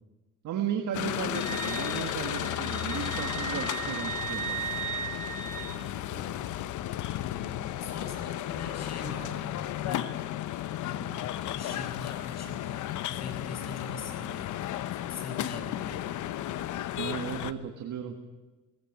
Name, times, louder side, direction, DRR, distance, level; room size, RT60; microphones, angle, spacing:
voice 1, 0.4-4.7 16.9-18.2, right 8 dB, 75° right, 4 dB, 1.8 m, -35 dB
sound 1, 0.9-17.5, left 13 dB, 80° left, 0.8 m, -34 dB
Wind instrument woodwind instrument, 1.3-5.8, right 7 dB, 25° right, 5.7 m, -36 dB
voice 2, 5.6-6.6 7.0-10.3 10.8-11.2 11.5-14.6 14.9-16.2, left 4 dB, 60° left, 4 dB, 6.3 m, -42 dB
18.5 x 17.0 x 8.7 m, 1.2 s
cardioid pair, 90°, 30 cm